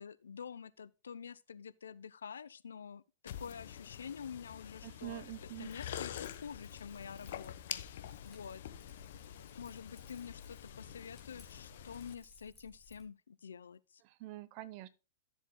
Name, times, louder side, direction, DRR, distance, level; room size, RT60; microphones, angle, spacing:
voice 1, 0.0-3.0 3.4-5.2 5.6-8.6 9.5-14.0, left 7 dB, 85° left, 0.6 m, -48 dB
sound 1, 3.3-12.1, left 10 dB, 65° left, 1.0 m, -47 dB
voice 2, 4.8-5.7 14.0-14.9, right 17 dB, 50° right, 1.0 m, -46 dB
Keys jangling, 5.0-13.0, left 1 dB, 15° left, 3.6 m, -62 dB
14.0 x 7.3 x 2.2 m
hypercardioid pair, 115°, 0 cm